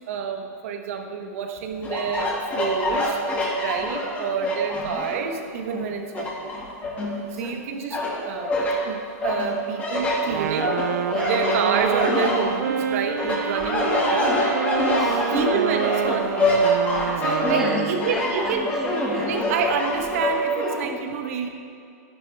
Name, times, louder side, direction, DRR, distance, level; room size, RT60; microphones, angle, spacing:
voice 1, 0.0-3.2 3.6-6.5 7.4-8.0 8.2-8.5 8.8-10.8 11.3-14.3 15.3-16.6 17.2-18.7 19.2-21.5, right 6 dB, 60° right, 5 dB, 1.2 m, -28 dB
sound 1, 1.8-5.3 5.7-7.5 7.9-8.8 9.2-12.8 13.2-20.8, left 1 dB, 20° left, 2.3 m, -25 dB
Wind instrument woodwind instrument, 10.2-18.2, right 8 dB, 85° right, 0.6 m, -28 dB
voice 2, 14.9-15.7 16.1-16.2 16.9-19.9 20.8-21.0, right 1 dB, 5° right, -3 dB, 1.6 m, -36 dB
11.0 x 11.0 x 3.5 m, 2.5 s
hypercardioid pair, 145°, 9 cm